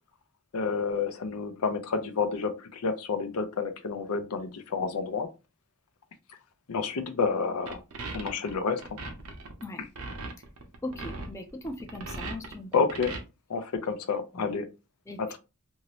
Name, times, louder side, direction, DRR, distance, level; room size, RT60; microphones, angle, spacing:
voice 1, 0.5-5.3 6.7-7.8 8.1-9.0 12.7-13.1 13.5-14.7 15.2-15.4, left 5 dB, 90° left, 0.6 m, -29 dB
sound 1, 7.7-13.2, right 3 dB, 80° right, 0.8 m, -38 dB
voice 2, 10.8-12.7 14.3-14.5 15.1-15.4, left 1 dB, 15° left, 0.4 m, -39 dB
2.7 x 2.7 x 3.0 m
head